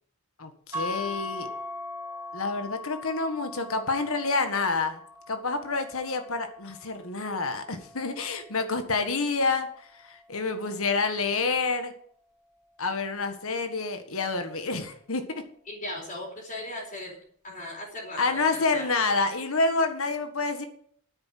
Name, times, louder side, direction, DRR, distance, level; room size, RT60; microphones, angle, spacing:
voice 1, 0.4-1.5 2.3-5.0 5.3-11.9 12.8-15.4 18.2-20.7, left 3 dB, 65° left, 7 dB, 1.6 m, -28 dB
sound 1, 0.7-9.0, left 2 dB, 15° right, 4.8 m, -40 dB
voice 2, 15.7-17.2 17.4-18.9, left 1 dB, 35° left, -2 dB, 4.4 m, -38 dB
9.7 x 9.0 x 7.6 m, 0.62 s
head